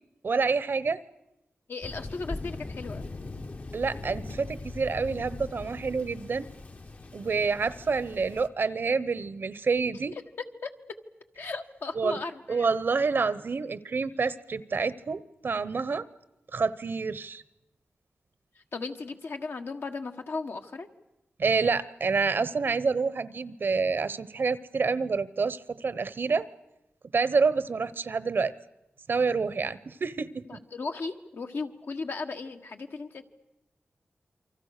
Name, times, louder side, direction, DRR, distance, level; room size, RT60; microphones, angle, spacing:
voice 1, 0.2-1.0 3.7-6.5 7.1-10.1 12.0-12.2 12.5-16.1 16.5-17.4 21.4-26.5 27.1-28.5 29.1-30.6, right 4 dB, 60° right, 16 dB, 0.9 m, -28 dB
voice 2, 1.7-3.1 10.6-10.7 11.3-12.7 18.7-20.9 30.5-33.2, left 4 dB, 65° left, 5 dB, 1.6 m, -36 dB
Thunder, 1.8-8.5, left 2 dB, 40° left, 1.0 m, -40 dB
28.0 x 24.5 x 6.6 m, 0.91 s
wide cardioid pair, 115°, 4 cm